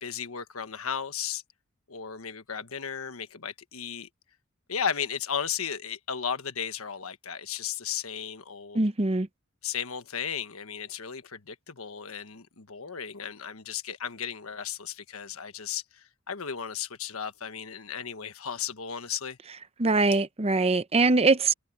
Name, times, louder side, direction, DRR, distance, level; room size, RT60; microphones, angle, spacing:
voice 1, 0.0-1.4 1.9-4.1 4.7-8.8 9.6-19.4, left 7 dB, 80° left, 1.4 m, -35 dB
voice 2, 8.7-9.3 19.8-21.5, right 3 dB, 30° right, 0.8 m, -22 dB
head